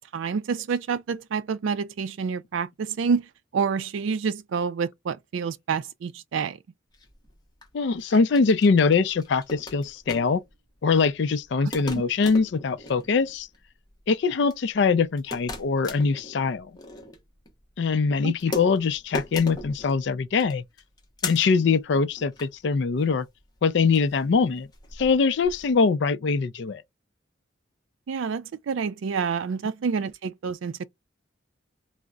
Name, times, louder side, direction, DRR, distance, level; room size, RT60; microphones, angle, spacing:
voice 1, 0.1-3.3 3.5-6.6 11.6-12.0 18.2-18.3 28.1-30.8, right 6 dB, 70° right, 0.4 m, -28 dB
sound 1, 6.9-25.7, left 2 dB, 20° left, 0.7 m, -40 dB
voice 2, 7.7-10.4 10.8-13.5 14.1-16.7 17.8-20.6 21.2-23.3 23.6-24.7 25.0-26.8, left 5 dB, 60° left, 0.4 m, -23 dB
3.7 x 2.0 x 2.2 m
head